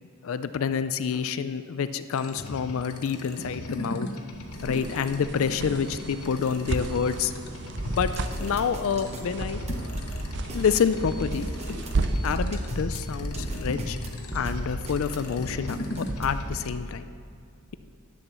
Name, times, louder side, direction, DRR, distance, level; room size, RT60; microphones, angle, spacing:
voice 1, 0.2-4.1 4.6-7.3 8.0-8.1 8.4-9.6 10.5-11.5 12.2-14.0 14.3-17.1, left 6 dB, 65° left, 12 dB, 0.4 m, -28 dB
sound 1, 2.1-16.7, left 1 dB, 80° left, 1.1 m, -38 dB
sound 2, 4.3-12.4, right 3 dB, 55° right, 0.5 m, -35 dB
sound 3, 7.8-16.5, right 1 dB, 30° right, 1.0 m, -34 dB
10.0 x 7.1 x 6.7 m, 2.4 s
head